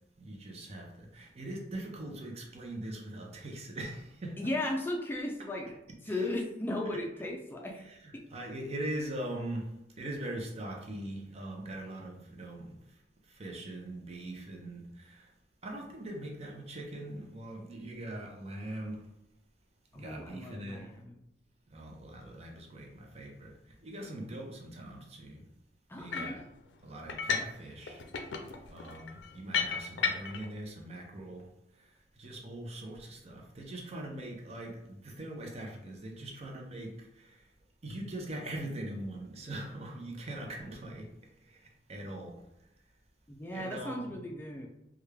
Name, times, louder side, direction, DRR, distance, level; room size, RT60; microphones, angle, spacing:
voice 1, 0.2-4.4 6.9-7.0 7.9-8.0 8.3-9.7 10.0-12.8 13.3-15.3 15.6-19.1 19.9-20.9 21.7-23.6 23.8-25.4 26.0-26.4 26.8-28.0 28.7-31.5 32.2-37.4 37.8-41.1 41.5-41.6 41.9-42.4 43.5-44.2, right 1 dB, 35° right, 0.6 m, -41 dB
voice 2, 4.4-5.8 6.0-7.8 8.1-8.2 19.9-21.2 25.9-26.4 43.3-44.7, left 1 dB, 10° left, 0.4 m, -36 dB
sound 1, 26.1-26.4 27.1-27.6 27.9-30.5, left 6 dB, 80° left, 0.4 m, -33 dB
3.4 x 2.4 x 3.2 m
head